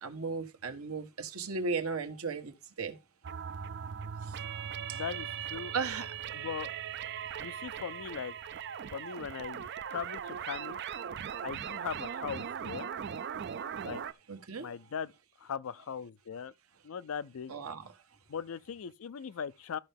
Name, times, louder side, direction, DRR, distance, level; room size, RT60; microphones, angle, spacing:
voice 1, 0.0-3.0 4.3-4.4 4.9-5.0 5.7-6.1 14.3-14.7 17.5-17.9, right 4 dB, 80° right, 1.3 m, -36 dB
sound 1, 3.2-14.1, right 8 dB, 50° right, 0.4 m, -39 dB
voice 2, 4.9-5.7 6.3-6.7 7.4-8.4 8.9-10.8 11.4-12.9 13.8-14.0 14.6-15.1 15.4-16.5 16.8-17.5 18.3-19.8, left 7 dB, 70° left, 0.4 m, -39 dB
13.0 x 5.6 x 3.5 m
head